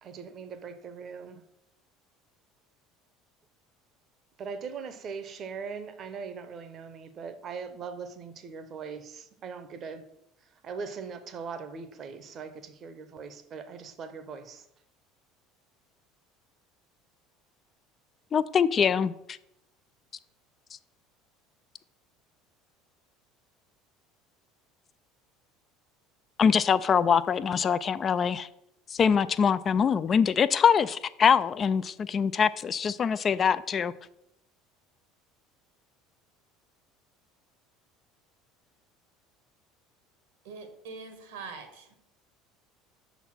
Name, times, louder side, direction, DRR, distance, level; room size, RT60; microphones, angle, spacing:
voice 1, 0.0-1.4 4.4-10.1 10.6-14.6, right 5 dB, 45° right, 0.8 m, -40 dB
voice 2, 18.3-19.4 26.4-28.5 28.9-33.9, left 7 dB, 35° left, 0.3 m, -24 dB
voice 3, 40.4-42.0, right 4 dB, 75° right, 1.3 m, -43 dB
5.8 x 4.1 x 5.9 m
hypercardioid pair, 70°, 0 cm